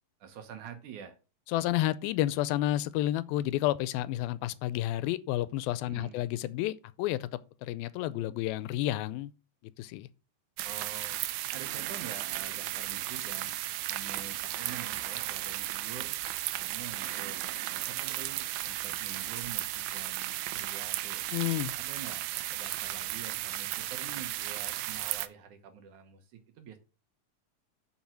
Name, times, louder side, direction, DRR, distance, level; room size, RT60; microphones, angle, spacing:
voice 1, 0.2-1.2 5.8-6.2 10.6-11.2 11.5-13.5 13.9-16.1 16.5-17.4 17.7-21.2 21.8-22.2 22.5-26.8, right 8 dB, 65° right, 2.2 m, -47 dB
voice 2, 1.5-9.3 9.8-10.1 21.3-21.7, left 14 dB, 85° left, 2.4 m, -30 dB
sound 1, 10.6-25.3, right 15 dB, 80° right, 1.8 m, -35 dB
7.3 x 5.9 x 6.2 m
omnidirectional pair, 4.2 m